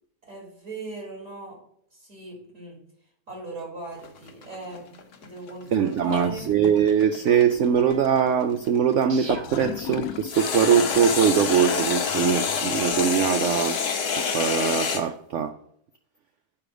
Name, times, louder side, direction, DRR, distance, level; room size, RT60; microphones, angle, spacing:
voice 1, 0.2-1.6 1.9-2.8 3.3-4.8 5.2-6.5, right 3 dB, 50° right, -1 dB, 2.9 m, -38 dB
sound 1, 4.0-9.2 10.3-15.0, left 6 dB, 55° left, 1.2 m, -27 dB
voice 2, 5.7-13.8 14.3-15.6, right 8 dB, 75° right, 9 dB, 0.7 m, -22 dB
sound 2, 6.1-11.9, right 1 dB, 25° right, 0.6 m, -42 dB
Gurgling / Toilet flush, 9.3-13.3, left 10 dB, 70° left, 0.9 m, -37 dB
8.4 x 4.9 x 5.0 m, 0.66 s
omnidirectional pair, 1.8 m